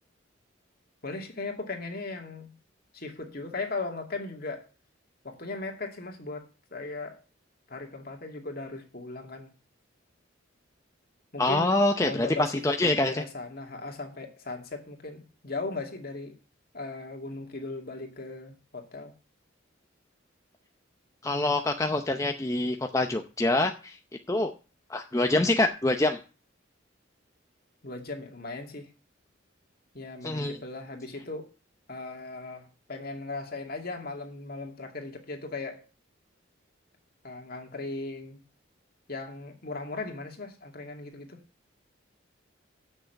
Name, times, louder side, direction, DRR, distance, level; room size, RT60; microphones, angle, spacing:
voice 1, 1.0-2.6 2.9-4.7 5.2-7.2 7.7-9.5 11.3-16.3 16.7-19.1 27.8-28.9 29.9-31.5 31.9-35.8 37.2-38.4 39.1-41.4, left 3 dB, 50° left, 2.3 m, -38 dB
voice 2, 11.4-12.3 12.6-13.2 21.2-24.0 24.3-24.5 24.9-26.2 30.2-30.6, left 2 dB, 15° left, 0.6 m, -25 dB
8.3 x 6.5 x 7.9 m
head